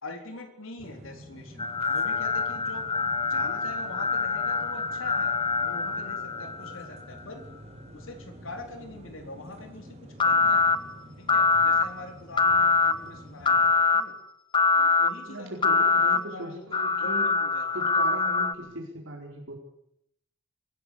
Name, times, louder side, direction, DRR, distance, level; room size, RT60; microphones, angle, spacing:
voice 1, 0.0-2.8 3.2-7.4 7.9-10.7 11.2-14.1 14.7-17.9 18.6-18.7, left 2 dB, 75° left, 5 dB, 4.1 m, -43 dB
sound 1, 0.8-13.7, equal, 30° right, 5.2 m, -48 dB
sound 2, 1.6-6.9 10.2-10.8 11.3-11.8 12.4-12.9 13.4-14.0 14.5-15.1 15.6-16.2 16.7-18.5, left 4 dB, 25° left, 1.1 m, -24 dB
voice 2, 15.3-17.3 17.7-19.5, right 1 dB, 75° right, 0 dB, 4.6 m, -38 dB
24.0 x 17.0 x 8.5 m, 0.77 s
head